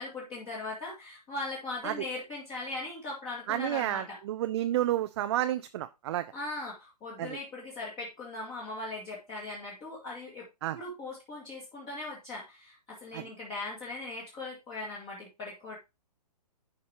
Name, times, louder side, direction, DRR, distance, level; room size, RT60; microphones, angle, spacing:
voice 1, 0.0-4.2 6.3-10.5 10.7-15.8, left 2 dB, 25° left, -4 dB, 2.1 m, -39 dB
voice 2, 3.5-6.3 7.2-7.4 10.6-10.8 13.1-13.2, right 13 dB, 40° right, 9 dB, 0.5 m, -30 dB
11.0 x 5.3 x 2.9 m, 0.25 s
figure-of-eight pair, 130°, 21 cm